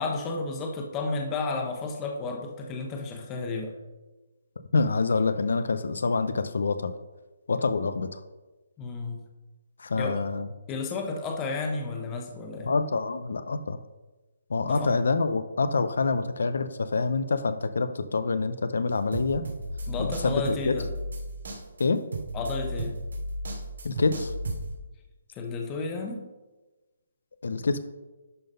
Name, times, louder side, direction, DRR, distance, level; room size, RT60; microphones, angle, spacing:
voice 1, 0.0-3.7 8.8-9.2 10.0-10.2 10.7-12.7 14.7-14.9 19.9-20.9 22.3-22.9 25.3-26.2, left 3 dB, 15° left, 2 dB, 0.9 m, -32 dB
voice 2, 4.7-6.9 7.5-8.2 9.8-10.5 12.7-13.8 14.5-19.5 20.0-20.7 21.8-22.0 23.8-24.3 27.4-27.8, left 4 dB, 75° left, 11 dB, 0.7 m, -26 dB
sound 1, 18.9-24.8, right 1 dB, 85° right, 2.3 m, -34 dB
11.0 x 3.9 x 5.3 m, 1.1 s
hypercardioid pair, 170°, 0 cm